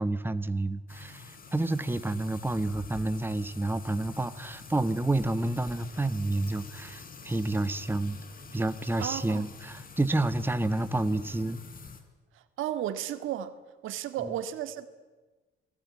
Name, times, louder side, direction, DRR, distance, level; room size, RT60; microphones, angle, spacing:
voice 1, 0.0-8.2 8.5-11.6, right 2 dB, 10° right, 12 dB, 1.4 m, -29 dB
sound 1, 0.9-12.0, left 5 dB, 45° left, 4.2 m, -47 dB
voice 2, 9.0-9.4 12.3-13.5 13.8-14.9, right 11 dB, 85° right, 11 dB, 2.0 m, -34 dB
29.0 x 20.0 x 9.6 m, 1.3 s
cardioid pair, 90°, 20 cm